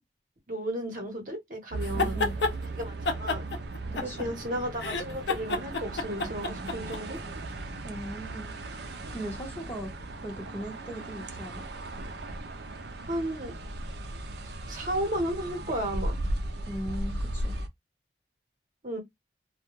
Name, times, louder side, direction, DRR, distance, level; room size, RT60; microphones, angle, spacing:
voice 1, 0.5-2.2 2.7-3.4 4.0-7.2 13.1-13.5 14.7-16.2 18.8-19.0, right 1 dB, 50° right, 1.0 m, -33 dB
sound 1, 1.7-17.7, right 2 dB, 70° right, 0.5 m, -37 dB
sound 2, 1.8-2.5 3.1-4.4 4.8-7.0, left 3 dB, 80° left, 0.5 m, -29 dB
voice 2, 1.9-2.3 3.9-4.3 7.8-9.9 10.2-11.6 16.7-17.6, right 1 dB, 10° left, 0.8 m, -39 dB
2.2 x 2.2 x 2.9 m
head